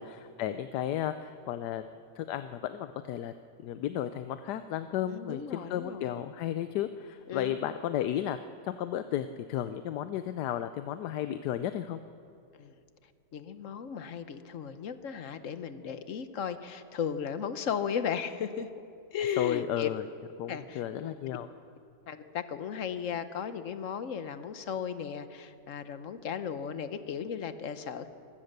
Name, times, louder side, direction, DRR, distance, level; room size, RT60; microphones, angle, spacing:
voice 1, 0.0-1.9 2.2-3.3 3.6-8.4 8.6-12.0 19.4-20.0 20.4-21.5, left 11 dB, 75° left, 10 dB, 1.2 m, -33 dB
voice 2, 5.1-6.1 7.3-7.6 12.6-12.7 13.3-18.7 19.1-19.9 20.5-21.1 22.1-28.1, left 7 dB, 55° left, 11 dB, 1.1 m, -35 dB
24.5 x 16.5 x 6.7 m, 2.5 s
omnidirectional pair, 1.9 m